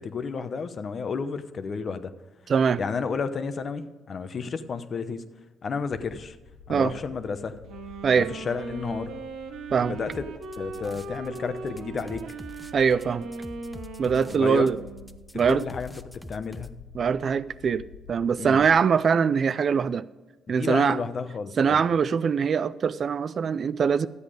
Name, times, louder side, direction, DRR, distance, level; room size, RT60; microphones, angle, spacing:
voice 1, 0.0-2.1 2.8-5.2 5.6-6.4 6.7-7.6 8.1-9.1 9.8-10.2 10.6-12.2 14.3-14.7 15.5-15.9 16.3-16.7 18.4-18.6 20.5-21.8, left 5 dB, 50° left, 10 dB, 0.8 m, -31 dB
voice 2, 2.5-2.8 6.7-6.9 8.0-8.3 9.7-10.0 12.7-13.3 14.0-14.8 15.3-15.6 16.9-20.0 20.5-21.0 21.6-24.1, right 6 dB, 50° right, 16 dB, 0.4 m, -23 dB
sound 1, 5.9-18.7, left 6 dB, 85° left, 2.0 m, -49 dB
Wind instrument woodwind instrument, 7.6-15.3, right 4 dB, 75° right, 1.1 m, -39 dB
sound 2, 10.1-11.4 11.7-16.7, left 1 dB, 5° left, 0.6 m, -44 dB
12.5 x 8.2 x 5.0 m, 1.1 s
cardioid pair, 90°, 0 cm